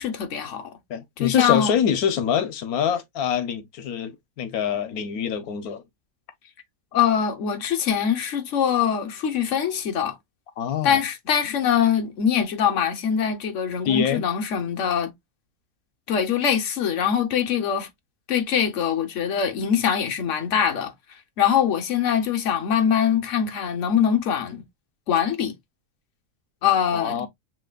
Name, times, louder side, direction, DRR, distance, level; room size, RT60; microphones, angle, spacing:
voice 1, 0.0-0.7 1.2-1.7 6.9-10.2 10.8-15.1 16.1-17.9 18.3-20.9 21.4-24.6 25.1-25.5 26.6-27.3, left 8 dB, 60° left, 1.2 m, -23 dB
voice 2, 0.9-5.8 10.6-11.0 13.8-14.2 26.9-27.3, left 8 dB, 85° left, 1.2 m, -25 dB
7.3 x 3.0 x 2.3 m
omnidirectional pair, 1.5 m